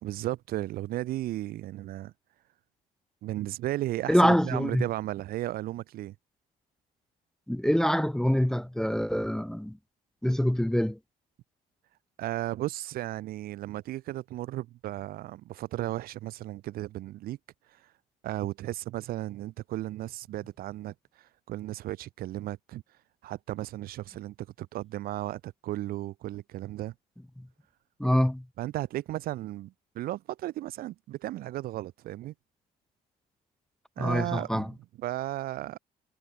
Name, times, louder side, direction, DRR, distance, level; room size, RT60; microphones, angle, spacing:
voice 1, 0.0-2.1 3.2-6.1 12.2-17.4 17.7-17.8 18.2-22.8 23.2-26.9 28.6-32.3 34.0-35.8, right 15 dB, 60° right, 0.4 m, -35 dB
voice 2, 4.1-4.8 7.5-9.8 10.2-11.0 28.0-28.4 34.0-34.7, equal, 5° left, 0.4 m, -25 dB
cardioid pair, 110°, 17 cm